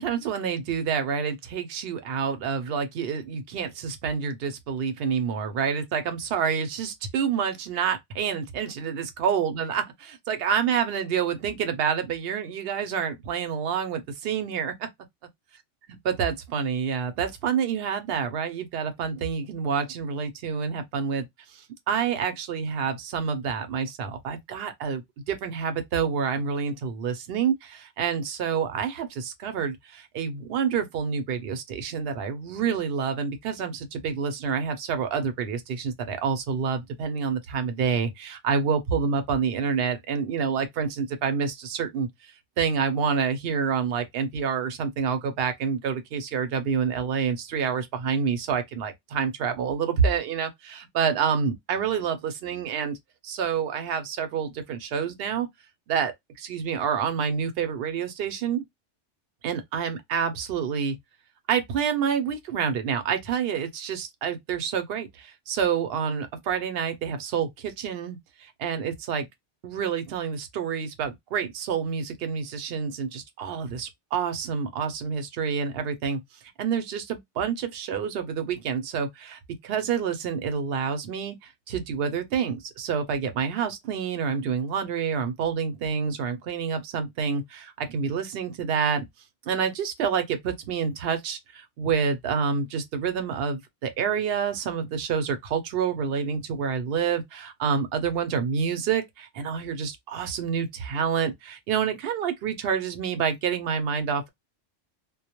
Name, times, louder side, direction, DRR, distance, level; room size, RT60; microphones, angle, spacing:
voice 1, 0.0-14.9 15.9-21.2 21.9-42.1 42.6-53.0 53.2-55.5 55.9-58.6 59.4-61.0 61.5-69.3 69.6-76.2 76.6-81.4 81.7-89.0 89.5-104.3, right 6 dB, 65° right, 0.7 m, -28 dB
2.2 x 2.0 x 2.8 m
omnidirectional pair, 1.2 m